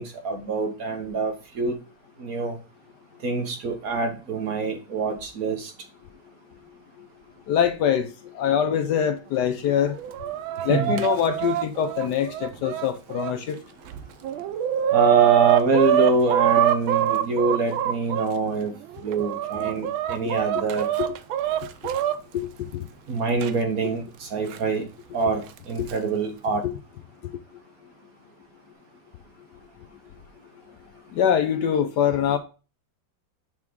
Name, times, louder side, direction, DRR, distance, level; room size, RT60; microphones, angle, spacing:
voice 1, 0.0-1.8 2.2-2.6 3.2-5.7 10.7-10.9 14.9-18.7 19.0-20.9 23.1-24.8 25.1-26.6, right 3 dB, 55° right, 1.3 m, -25 dB
voice 2, 7.5-10.0 10.6-13.6 22.3-22.8 25.8-25.9 26.6-26.7 31.1-32.4, left 8 dB, 70° left, 1.1 m, -24 dB
Chicken rooster, 9.8-13.3 13.9-14.0 14.2-18.3 18.9-22.2 23.4-23.5 24.5-24.6 25.6-25.9, right 12 dB, 90° right, 1.4 m, -24 dB
6.0 x 3.6 x 6.1 m
omnidirectional pair, 2.1 m